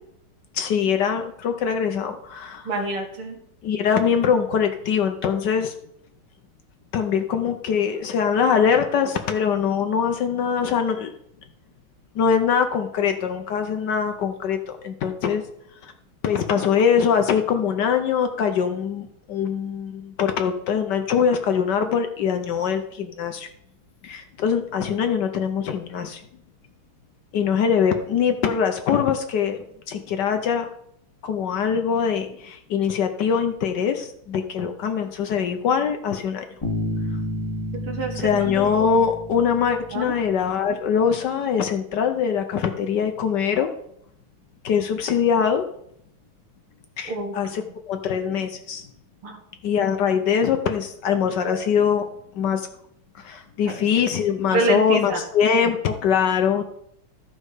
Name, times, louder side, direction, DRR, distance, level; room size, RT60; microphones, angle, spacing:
voice 1, 0.5-2.7 3.6-5.7 6.9-11.1 12.1-15.5 15.8-15.9 16.2-23.5 24.0-26.2 27.3-30.7 31.2-36.5 38.2-43.7 44.6-45.7 47.0-47.6 47.9-48.9 49.6-52.1 52.3-52.7 53.1-56.8, left 7 dB, 65° left, 6 dB, 1.2 m, -23 dB
voice 2, 2.6-3.4 37.8-38.5 39.9-40.1 47.1-47.7 49.2-49.4 53.6-53.8 54.5-55.2, right 2 dB, 80° right, 2 dB, 2.5 m, -27 dB
Bass guitar, 36.6-40.3, left 1 dB, 15° left, 1.5 m, -31 dB
13.5 x 5.4 x 4.8 m, 0.72 s
omnidirectional pair, 2.3 m